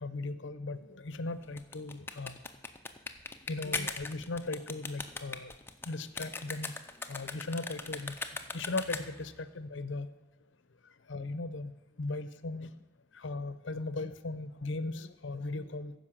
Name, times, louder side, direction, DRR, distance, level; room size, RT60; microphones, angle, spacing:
voice 1, 0.0-2.4 3.5-5.5 5.9-6.7 7.1-8.2 8.5-10.1 11.1-11.7 12.0-12.7 13.2-15.9, left 2 dB, 65° left, 13 dB, 0.7 m, -37 dB
sound 1, 1.4-9.3, left 3 dB, 10° left, 0.5 m, -40 dB
14.5 x 5.5 x 7.3 m, 0.99 s
head